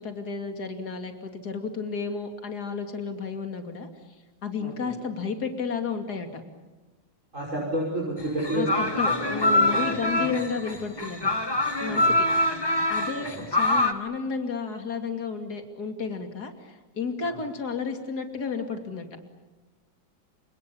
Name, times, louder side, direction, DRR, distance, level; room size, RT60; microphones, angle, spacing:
voice 1, 0.0-3.9 4.4-6.4 8.5-11.2 11.8-12.2 12.9-19.1, left 5 dB, 50° left, 5 dB, 3.2 m, -32 dB
voice 2, 4.6-4.9 7.3-10.4 11.8-12.2 13.1-13.3 17.2-17.4, right 1 dB, 35° right, -4 dB, 6.0 m, -31 dB
sound 1, 8.2-13.9, left 2 dB, 15° left, 1.4 m, -24 dB
29.5 x 27.0 x 7.1 m, 1.2 s
omnidirectional pair, 2.2 m